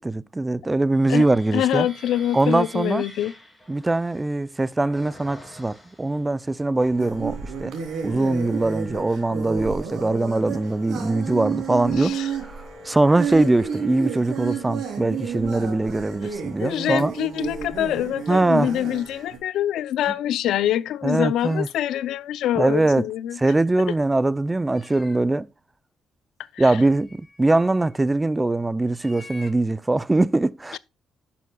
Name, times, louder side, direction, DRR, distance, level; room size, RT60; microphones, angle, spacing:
voice 1, 0.0-1.9 2.3-3.0 3.7-7.7 8.0-17.1 18.3-18.7 21.0-21.7 22.5-23.1 23.4-25.5 26.6-30.8, right 2 dB, 15° right, 0.4 m, -22 dB
sound 1, 0.9-6.4 7.0-7.8 8.3-17.5, left 2 dB, 5° left, 2.9 m, -49 dB
voice 2, 1.5-3.3 12.0-12.3 16.6-23.4 26.5-26.6 30.7-30.8, left 11 dB, 80° left, 0.5 m, -25 dB
sound 2, 6.8-19.4, right 7 dB, 75° right, 2.9 m, -31 dB
sound 3, 21.4-21.7 22.8-22.9 23.3-23.4 24.6-25.5 26.7-28.0 28.8-29.5, left 3 dB, 35° left, 2.6 m, -48 dB
11.0 x 6.9 x 2.2 m
cardioid pair, 90°, 0 cm